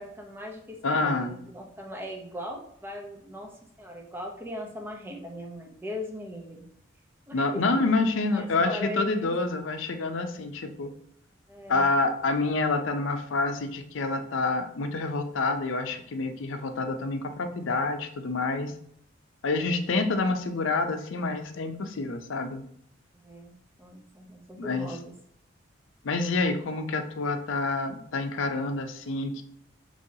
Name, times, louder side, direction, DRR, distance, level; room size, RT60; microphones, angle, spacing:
voice 1, 0.0-3.5 3.8-6.7 7.3-7.7 8.3-9.3 11.5-11.9 23.2-25.1, left 1 dB, 10° right, 1 dB, 0.6 m, -39 dB
voice 2, 0.8-1.4 7.3-10.9 11.7-18.7 19.4-22.6 24.6-25.0 26.0-29.4, left 3 dB, 85° left, 7 dB, 0.5 m, -27 dB
5.3 x 3.1 x 2.7 m, 0.68 s
head